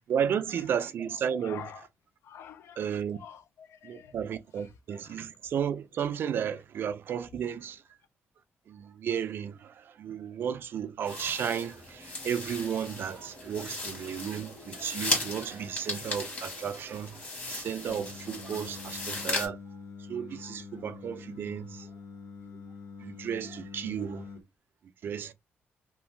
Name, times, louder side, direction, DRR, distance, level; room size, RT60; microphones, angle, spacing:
voice 1, 0.0-1.7 2.8-3.2 3.8-7.8 8.7-17.2 17.5-19.6 20.1-21.9 23.0-24.2 25.0-25.3, right 8 dB, 55° right, 0.3 m, -33 dB
voice 2, 1.4-1.9 2.2-4.1 4.9-5.2, left 8 dB, 75° left, 0.4 m, -47 dB
sound 1, 11.1-19.5, left 2 dB, 35° left, 1.2 m, -36 dB
Singing, 17.9-24.4, left 4 dB, 55° left, 1.2 m, -45 dB
2.5 x 2.2 x 3.1 m
wide cardioid pair, 165°, 4 cm